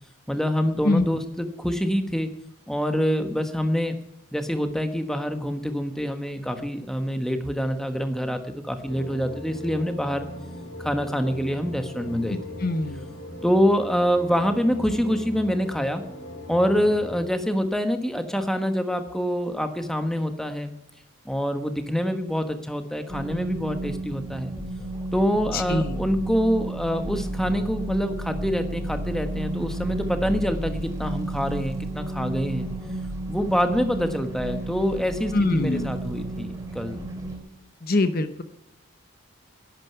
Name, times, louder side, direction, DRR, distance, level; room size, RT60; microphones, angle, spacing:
voice 1, 0.3-2.3 2.7-3.9 4.3-10.3 10.8-12.4 13.4-16.0 16.5-20.7 21.2-24.5 25.1-32.7 33.3-37.0, equal, ahead, 7 dB, 1.1 m, -26 dB
sound 1, 8.9-17.2, left 1 dB, 70° left, 3.5 m, -39 dB
voice 2, 12.3-13.1 25.5-26.0 35.3-35.9 37.8-38.4, left 2 dB, 45° left, 10 dB, 0.8 m, -24 dB
sound 2, 23.1-37.4, right 1 dB, 15° right, 2.9 m, -32 dB
11.5 x 8.9 x 9.6 m, 0.90 s
head